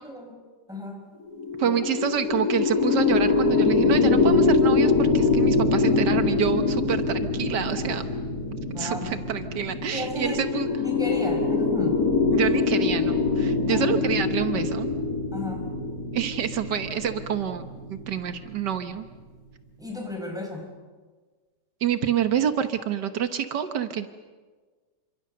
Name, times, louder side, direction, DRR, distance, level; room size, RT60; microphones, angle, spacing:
voice 1, 0.0-0.4 0.7-1.0 1.6-1.8 8.7-9.1 9.9-10.4 10.8-12.0 13.7-13.9 15.3-15.7 19.8-20.7, left 1 dB, ahead, 2 dB, 5.9 m, -34 dB
sound 1, 1.3-18.8, left 4 dB, 60° left, 3.2 m, -24 dB
voice 2, 1.6-8.1 8.8-10.7 12.3-14.9 16.1-17.6 17.9-19.0 21.8-24.1, right 8 dB, 85° right, 9 dB, 1.7 m, -27 dB
28.5 x 25.5 x 6.8 m, 1.4 s
omnidirectional pair, 1.8 m